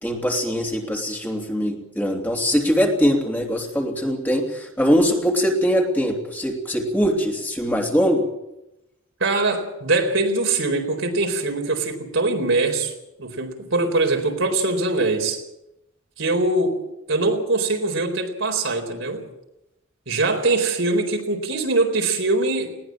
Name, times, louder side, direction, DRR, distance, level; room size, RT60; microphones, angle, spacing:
voice 1, 0.0-8.3, equal, 10° left, 1 dB, 3.1 m, -22 dB
voice 2, 9.2-12.9 13.2-15.4 16.2-16.8 17.1-19.2 20.1-22.7, right 2 dB, 70° right, 3 dB, 4.2 m, -22 dB
20.5 x 18.5 x 7.6 m, 0.89 s
head